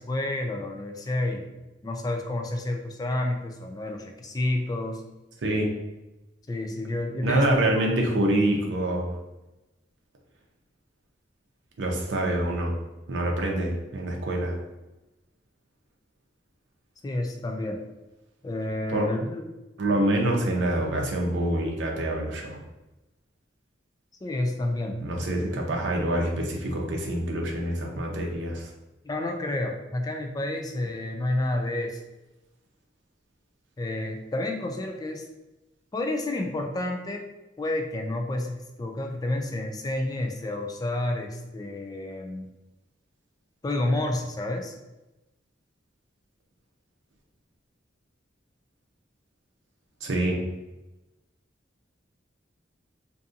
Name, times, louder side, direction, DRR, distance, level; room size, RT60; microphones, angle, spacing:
voice 1, 0.0-1.5 1.8-5.0 6.5-7.9 17.0-17.8 18.4-19.5 24.2-25.0 29.0-32.0 33.8-35.2 35.9-37.2 37.6-42.5 43.6-44.8, left 1 dB, 20° left, 3 dB, 0.3 m, -30 dB
voice 2, 7.2-9.1 11.8-12.7 13.1-14.6 18.9-19.1 19.8-22.6 25.0-28.7 50.0-50.4, right 1 dB, 70° right, 0 dB, 0.6 m, -26 dB
2.6 x 2.6 x 2.4 m, 1.0 s
head